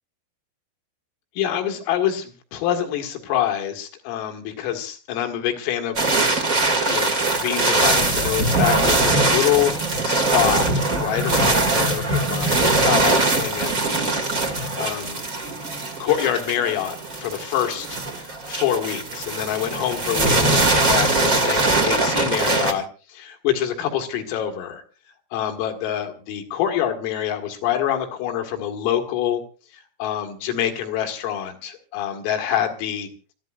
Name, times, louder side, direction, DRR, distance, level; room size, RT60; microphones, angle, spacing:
voice 1, 1.4-6.0 6.3-6.5 6.8-9.7 10.0-14.1 14.8-15.2 16.0-18.0 18.5-24.8 25.3-29.4 30.0-33.1, left 10 dB, 85° left, 5 dB, 4.5 m, -26 dB
sound 1, 5.9-22.7, right 2 dB, 45° right, 1.1 m, -21 dB
27.5 x 14.5 x 2.5 m, 0.35 s
omnidirectional pair, 5.8 m